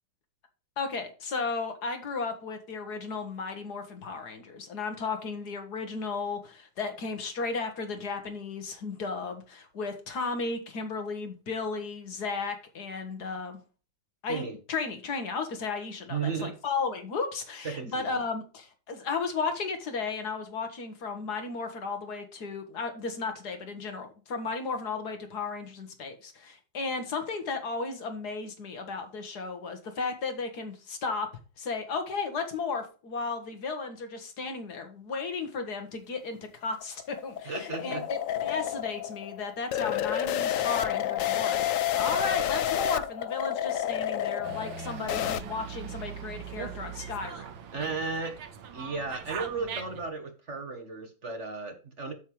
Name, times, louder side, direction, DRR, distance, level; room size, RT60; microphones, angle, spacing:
voice 1, 0.8-13.6 14.2-31.3 31.6-47.5, left 4 dB, 60° left, 1.8 m, -34 dB
voice 2, 16.1-16.5 17.6-18.2 37.5-38.1 47.7-48.3 48.7-52.1, right 4 dB, 45° right, 1.3 m, -34 dB
sound 1, 36.4-45.4, left 11 dB, 75° left, 0.7 m, -30 dB
Dog, 44.4-50.1, right 8 dB, 90° right, 1.8 m, -40 dB
8.3 x 7.5 x 3.1 m
omnidirectional pair, 2.1 m